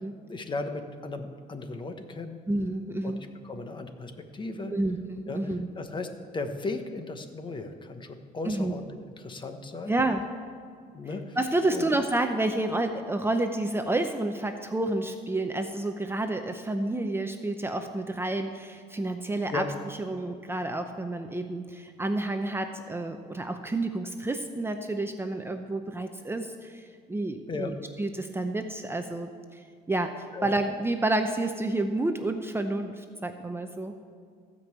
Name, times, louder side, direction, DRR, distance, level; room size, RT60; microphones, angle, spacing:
voice 1, 0.3-2.4 3.0-4.7 5.3-5.4 5.8-8.8 9.2-10.0 10.9-11.4 11.7-11.9 19.5-19.7 27.5-27.7 30.3-30.5, left 3 dB, 30° left, 7 dB, 1.1 m, -36 dB
voice 2, 2.5-3.2 4.7-5.7 8.4-8.7 9.9-10.2 11.4-19.7 20.0-33.9, right 2 dB, 15° right, 6 dB, 0.7 m, -30 dB
15.5 x 5.4 x 8.1 m, 2.2 s
cardioid pair, 110°, 17 cm